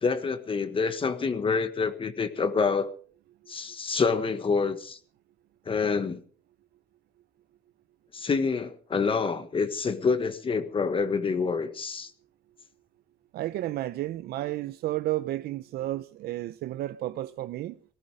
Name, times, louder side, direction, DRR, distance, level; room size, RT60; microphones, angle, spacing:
voice 1, 0.0-2.9 3.5-5.0 5.7-6.2 8.1-12.1, left 5 dB, 30° left, 1.5 m, -27 dB
voice 2, 13.3-17.8, right 15 dB, 70° right, 0.7 m, -32 dB
18.5 x 13.5 x 5.0 m
cardioid pair, 110°, 17 cm